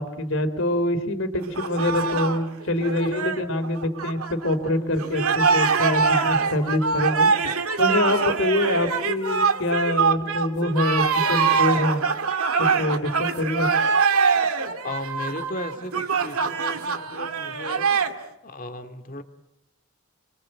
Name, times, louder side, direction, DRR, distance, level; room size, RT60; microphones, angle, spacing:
voice 1, 0.0-7.3 7.8-12.0 12.6-13.7, left 1 dB, 60° left, 9 dB, 3.3 m, -25 dB
sound 1, 1.4-4.7 5.0-18.1, right 5 dB, 80° right, 2.2 m, -23 dB
voice 2, 14.8-19.2, left 1 dB, 40° left, 8 dB, 2.4 m, -36 dB
29.0 x 24.0 x 7.8 m, 0.84 s
head